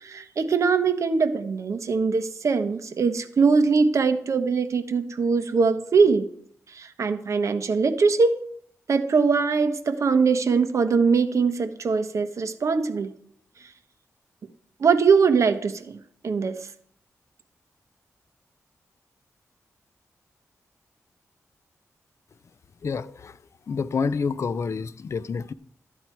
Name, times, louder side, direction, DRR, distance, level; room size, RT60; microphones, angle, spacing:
voice 1, 0.0-6.2 6.7-8.4 8.9-13.1 14.8-16.6, right 5 dB, 65° right, 1.2 m, -22 dB
voice 2, 22.8-23.4 23.7-25.5, left 5 dB, 60° left, 0.6 m, -28 dB
13.0 x 9.7 x 4.6 m
wide cardioid pair, 95°, 6 cm